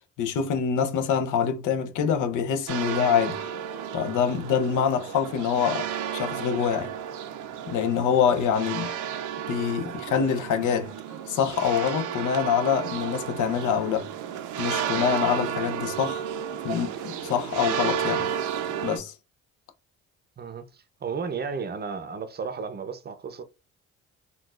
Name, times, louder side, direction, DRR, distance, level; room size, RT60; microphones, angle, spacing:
voice 1, 0.2-3.4 3.9-5.9 6.1-6.9 7.7-8.9 9.5-10.9 11.3-14.1 14.6-16.3 16.6-16.9 17.2-18.3 18.8-19.1, left 7 dB, 80° left, 0.6 m, -25 dB
sound 1, 2.7-19.0, right 9 dB, 80° right, 0.6 m, -32 dB
voice 2, 20.4-23.4, right 5 dB, 35° right, 0.6 m, -33 dB
3.8 x 2.3 x 2.4 m
cardioid pair, 90°, 30 cm